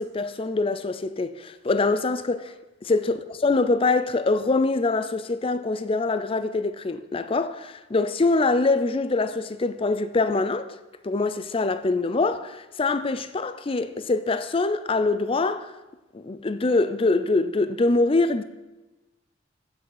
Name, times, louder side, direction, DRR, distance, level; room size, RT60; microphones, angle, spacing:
voice 1, 0.0-2.5 2.8-10.8 11.0-15.7 16.1-18.4, left 3 dB, 30° left, 0.5 m, -24 dB
7.6 x 6.3 x 8.0 m
head